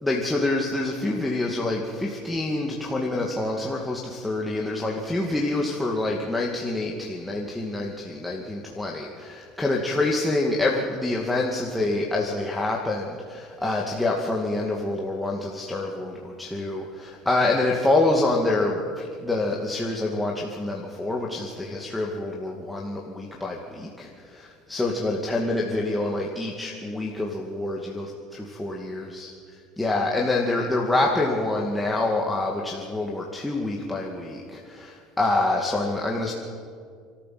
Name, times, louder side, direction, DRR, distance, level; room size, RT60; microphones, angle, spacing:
voice 1, 0.0-29.3 29.8-36.3, left 2 dB, 5° left, -2 dB, 2.3 m, -26 dB
29.0 x 13.5 x 7.8 m, 2.2 s
supercardioid pair, 110°, 0 cm